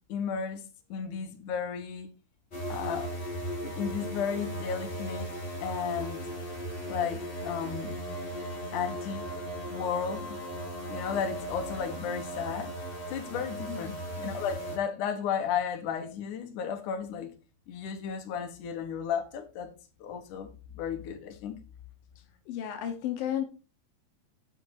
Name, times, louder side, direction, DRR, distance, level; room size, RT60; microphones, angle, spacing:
voice 1, 0.1-0.6 0.9-2.1 2.7-3.1 3.6-5.3 5.6-6.2 6.9-7.9 8.7-9.4 9.7-10.4 10.9-12.7 13.1-17.3 17.7-19.7 20.0-21.6, left 7 dB, 65° left, 2.0 m, -34 dB
sound 1, 2.5-14.8, right 1 dB, 25° left, 1.5 m, -37 dB
voice 2, 22.5-23.4, left 10 dB, 85° left, 2.0 m, -33 dB
10.5 x 5.8 x 4.8 m
omnidirectional pair, 5.7 m